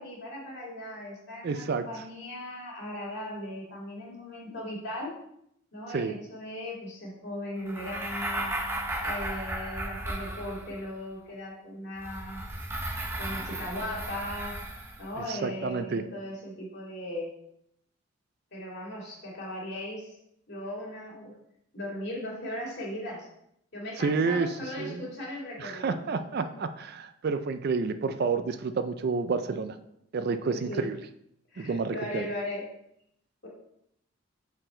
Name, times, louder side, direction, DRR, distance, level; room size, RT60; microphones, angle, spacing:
voice 1, 0.0-5.1 5.7-8.5 9.0-12.4 13.2-14.6 15.0-17.3 18.5-20.2 20.5-21.3 21.7-23.3 23.7-26.0 26.4-26.5 30.4-30.9 31.5-32.7, left 1 dB, 55° left, -4 dB, 2.3 m, -38 dB
voice 2, 1.4-1.9 5.9-6.2 15.3-16.0 24.0-25.1 25.6-29.8 30.1-31.0 31.6-32.3, right 4 dB, 50° right, 10 dB, 0.4 m, -29 dB
sound 1, 7.7-10.9 12.0-15.1, right 1 dB, 10° right, 0.6 m, -35 dB
6.1 x 4.5 x 3.8 m, 0.75 s
head